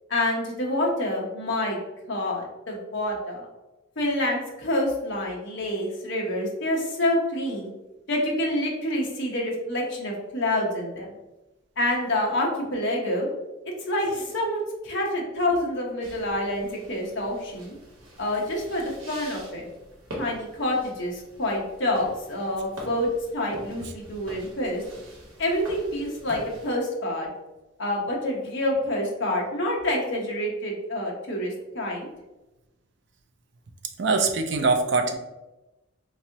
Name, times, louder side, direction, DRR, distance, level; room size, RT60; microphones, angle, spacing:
voice 1, 0.1-1.8 2.1-3.5 4.0-7.7 8.1-11.1 11.8-13.3 13.9-17.7 18.2-19.6 20.2-24.8 25.4-27.3 27.8-32.1, left 1 dB, 55° left, -1 dB, 0.9 m, -27 dB
sound 1, 16.0-26.7, right 1 dB, 70° right, 1.1 m, -44 dB
voice 2, 34.0-35.2, right 3 dB, 55° right, 5 dB, 0.4 m, -22 dB
3.5 x 3.0 x 2.8 m, 1.0 s
head